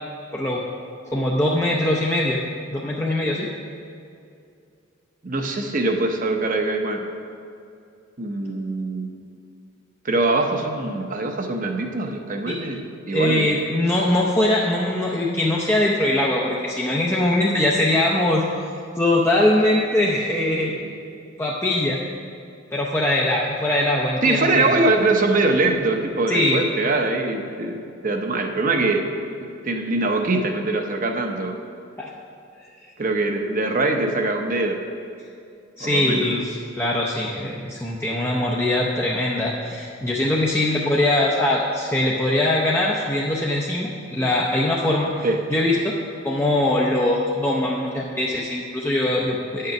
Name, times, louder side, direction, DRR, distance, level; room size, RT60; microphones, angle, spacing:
voice 1, 0.3-0.6 1.1-2.4 2.7-3.5 12.5-12.6 13.1-18.4 19.0-20.7 21.4-22.0 22.7-24.8 26.3-26.6 32.0-32.1 35.8-45.2 45.5-45.9 46.2-49.7, left 1 dB, 10° left, -4 dB, 0.6 m, -22 dB
voice 2, 5.2-7.1 8.2-9.1 10.0-13.6 20.8-20.9 24.2-29.1 29.6-31.6 33.0-34.8 35.8-36.5 45.2-45.4, right 2 dB, 40° right, 4 dB, 0.8 m, -23 dB
8.9 x 6.6 x 5.8 m, 2.4 s
head